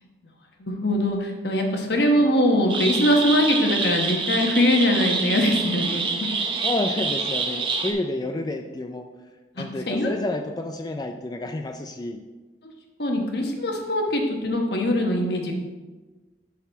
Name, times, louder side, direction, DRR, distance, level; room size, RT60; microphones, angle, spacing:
voice 1, 0.6-6.3 9.6-10.1 13.0-15.5, equal, 65° left, 2 dB, 1.2 m, -22 dB
sound 1, 2.7-7.9, right 4 dB, 30° right, 0.9 m, -26 dB
voice 2, 6.6-9.1 9.6-12.2, left 2 dB, 20° left, 5 dB, 0.4 m, -29 dB
11.5 x 4.1 x 4.0 m, 1.2 s
head